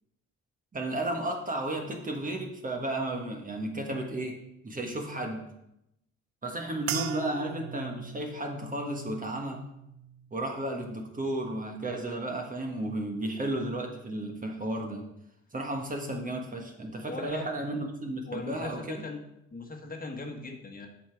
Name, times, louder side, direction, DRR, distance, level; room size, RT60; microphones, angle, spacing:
voice 1, 0.7-4.4 4.6-5.5 6.4-9.6 10.3-15.0 15.5-19.0, right 1 dB, 25° right, 2 dB, 1.4 m, -33 dB
sound 1, 6.9-11.4 11.7-12.4 13.0-13.2, right 10 dB, 65° right, 0.6 m, -41 dB
voice 2, 17.1-17.5 18.2-19.2 19.5-20.9, left 3 dB, 30° left, 2 dB, 1.5 m, -39 dB
8.4 x 5.9 x 4.7 m, 0.84 s
cardioid pair, 90°, 30 cm